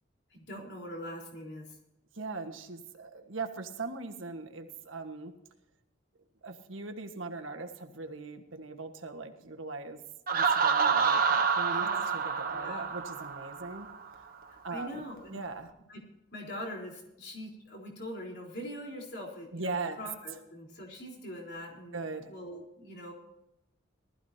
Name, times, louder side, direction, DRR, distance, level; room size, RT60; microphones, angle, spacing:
voice 1, 0.3-1.7 11.7-12.0 12.5-12.9 14.7-15.4 15.9-16.0 16.3-23.1, equal, 55° left, -1 dB, 4.1 m, -42 dB
voice 2, 2.1-5.3 6.4-10.0 10.3-13.9 14.6-15.0 15.3-15.7 19.5-20.0 21.9-22.3, right 3 dB, 80° right, 5 dB, 1.6 m, -40 dB
Laughter, 10.3-13.9, right 6 dB, 45° right, 1.2 m, -28 dB
19.5 x 14.0 x 2.9 m, 0.89 s
head